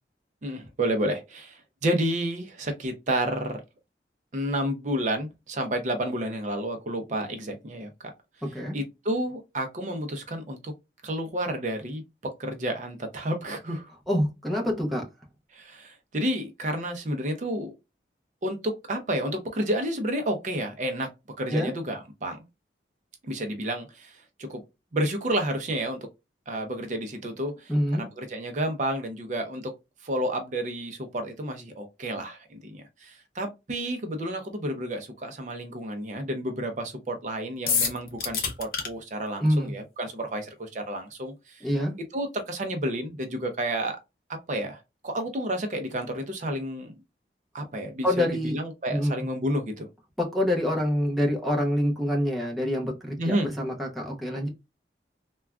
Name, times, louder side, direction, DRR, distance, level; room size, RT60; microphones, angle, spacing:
voice 1, 0.4-3.6 4.3-7.9 8.7-10.7 11.0-13.9 15.5-17.7 18.4-21.1 21.4-22.4 23.3-24.6 24.9-26.1 26.5-29.7 30.0-41.7 42.1-44.0 44.3-47.0 47.5-49.9 53.2-53.5, right 1 dB, 45° right, 0.5 m, -30 dB
voice 2, 8.4-8.8 14.1-15.0 21.5-21.7 27.7-28.0 39.4-39.7 41.6-41.9 48.0-48.6 48.9-49.2 50.2-54.5, equal, ahead, 0.7 m, -26 dB
sound 1, 37.7-38.9, left 6 dB, 50° left, 0.8 m, -26 dB
3.4 x 2.2 x 2.3 m
head